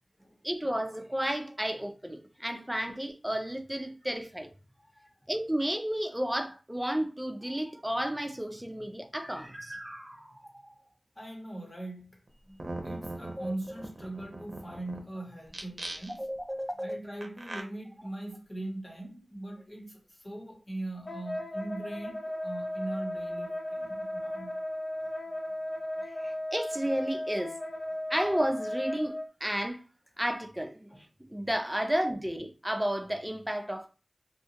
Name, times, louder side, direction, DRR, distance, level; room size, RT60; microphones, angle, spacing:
voice 1, 0.4-4.5 5.3-10.7 12.5-12.6 13.4-13.5 16.1-17.0 26.2-27.6 28.1-29.8 30.2-30.9 31.3-33.9, equal, 10° right, 0.5 m, -32 dB
voice 2, 4.8-5.1 11.2-12.2 12.8-16.2 16.8-24.6 30.9-31.0, right 1 dB, 30° left, 0.9 m, -40 dB
sound 1, 12.3-12.4 12.6-15.0 15.5-16.4 17.2-17.6, right 2 dB, 55° right, 0.6 m, -40 dB
Wind instrument woodwind instrument, 21.1-29.3, left 1 dB, 75° left, 0.8 m, -36 dB
2.6 x 2.3 x 2.8 m
wide cardioid pair, 60°, 0 cm